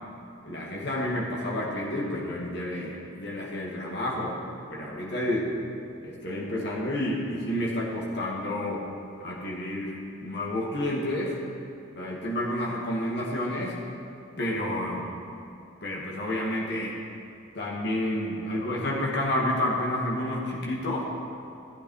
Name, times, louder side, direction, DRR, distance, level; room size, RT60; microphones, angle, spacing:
voice 1, 0.4-4.3 4.7-5.5 6.0-8.9 9.2-11.4 12.0-13.8 14.4-15.1 15.8-16.9 17.5-21.0, left 1 dB, 55° left, -4 dB, 2.1 m, -30 dB
13.5 x 8.7 x 4.8 m, 2.6 s
head